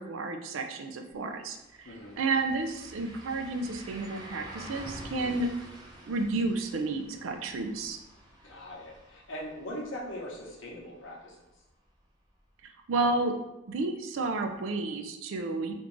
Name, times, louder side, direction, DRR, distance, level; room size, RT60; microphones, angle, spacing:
voice 1, 0.0-1.9 2.2-5.5 6.1-8.0 12.9-13.3 13.7-15.7, right 3 dB, 75° right, 5 dB, 0.4 m, -31 dB
sound 1, 1.1-1.2 1.5-11.3 11.7-11.8 14.5-14.6, right 1 dB, 20° right, 0.6 m, -48 dB
voice 2, 1.8-2.2 8.4-11.4, equal, 70° left, -3 dB, 0.8 m, -41 dB
3.6 x 2.5 x 3.0 m, 0.95 s
head